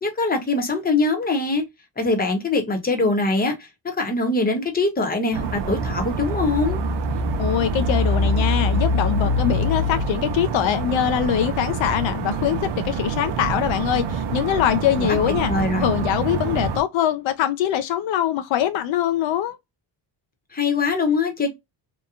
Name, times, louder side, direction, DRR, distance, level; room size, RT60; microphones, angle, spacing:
voice 1, 0.0-1.6 2.0-3.6 3.8-6.8 15.0-15.2 15.5-15.9 20.5-21.5, left 3 dB, 20° left, 0.9 m, -22 dB
sound 1, 5.3-16.8, right 1 dB, 65° right, 0.7 m, -25 dB
voice 2, 7.4-15.5 15.8-19.6, left 11 dB, 75° left, 0.5 m, -23 dB
2.9 x 2.2 x 2.4 m
cardioid pair, 110°, 47 cm